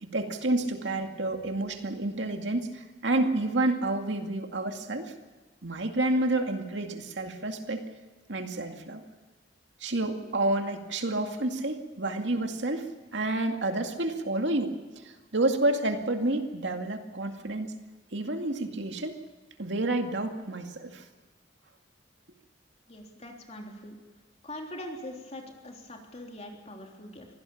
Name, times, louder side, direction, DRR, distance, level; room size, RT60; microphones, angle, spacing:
voice 1, 0.0-5.1 5.6-7.8 8.3-9.0 9.8-14.8 15.0-17.7 18.1-19.1 19.6-21.0, right 2 dB, 70° right, 5 dB, 2.3 m, -29 dB
voice 2, 22.9-24.0 24.4-27.3, left 1 dB, 35° left, 2 dB, 3.5 m, -42 dB
24.5 x 17.0 x 7.2 m, 1.3 s
head